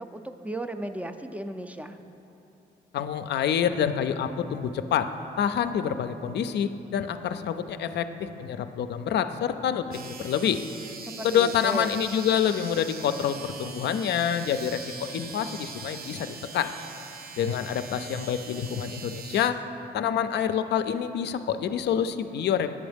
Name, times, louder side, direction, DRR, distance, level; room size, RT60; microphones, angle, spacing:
voice 1, 0.0-2.0 11.1-12.0, right 1 dB, 5° right, 8 dB, 0.4 m, -35 dB
voice 2, 2.9-5.1 5.4-10.6 11.2-16.7 17.4-19.6 19.9-22.7, left 8 dB, 65° left, 10 dB, 0.4 m, -27 dB
sound 1, 9.9-19.5, right 5 dB, 55° right, 0.6 m, -42 dB
8.7 x 6.1 x 3.4 m, 2.9 s
cardioid pair, 70°, 19 cm